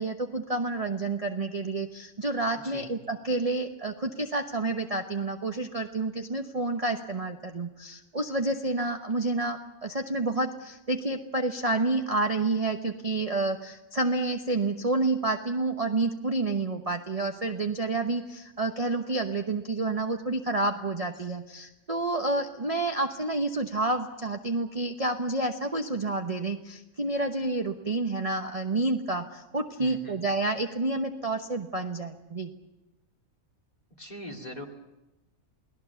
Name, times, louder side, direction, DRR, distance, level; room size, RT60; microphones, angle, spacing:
voice 1, 0.0-32.5, right 2 dB, 30° right, 4 dB, 1.0 m, -29 dB
voice 2, 29.8-30.2 34.0-34.7, left 1 dB, 25° left, 2 dB, 2.6 m, -41 dB
29.5 x 18.5 x 7.1 m, 1.0 s
omnidirectional pair, 1.6 m